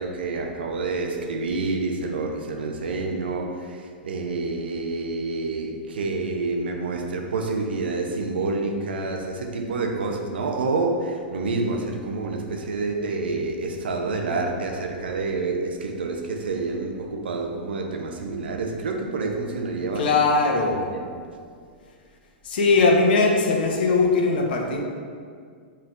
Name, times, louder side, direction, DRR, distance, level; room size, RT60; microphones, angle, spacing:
voice 1, 0.0-20.2 20.8-21.1, right 3 dB, 75° right, 3 dB, 0.5 m, -28 dB
voice 2, 20.0-20.8 22.4-24.8, left 3 dB, 65° left, 1 dB, 0.7 m, -20 dB
5.6 x 3.2 x 2.5 m, 2.1 s
figure-of-eight pair, 105°, 6 cm